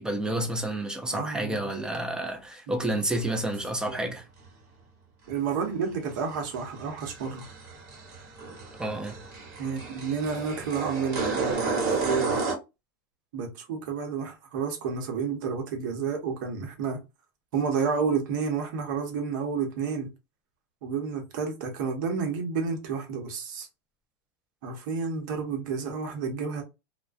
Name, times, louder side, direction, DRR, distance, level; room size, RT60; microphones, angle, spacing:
voice 1, 0.0-4.3 8.8-9.2, right 1 dB, 5° right, 0.4 m, -30 dB
voice 2, 1.1-1.6 3.0-3.1 3.9-4.1 5.3-7.5 9.6-12.4 13.3-17.0 17.5-20.1 20.8-23.7 24.6-26.6, right 5 dB, 65° right, 0.9 m, -30 dB
sound 1, 3.1-3.2 3.5-3.6 6.1-12.5, right 4 dB, 35° right, 1.1 m, -32 dB
2.3 x 2.1 x 2.5 m
supercardioid pair, 135°, 11 cm